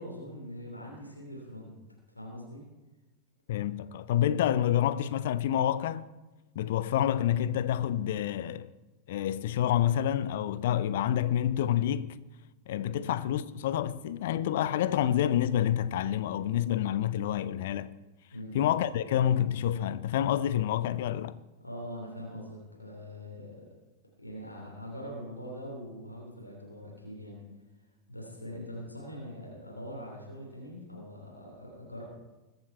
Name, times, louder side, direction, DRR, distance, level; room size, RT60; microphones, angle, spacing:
voice 1, 0.0-1.7 2.1-2.6 12.9-13.1 18.3-18.6 21.6-23.7 24.2-27.4 28.1-32.0, equal, 85° left, 3.2 m, -42 dB
voice 2, 3.5-6.0 6.5-8.7 9.1-12.2 12.7-17.9 18.5-21.4, left 11 dB, 55° left, 0.6 m, -28 dB
22.0 x 8.1 x 4.5 m
figure-of-eight pair, 90°, 0 cm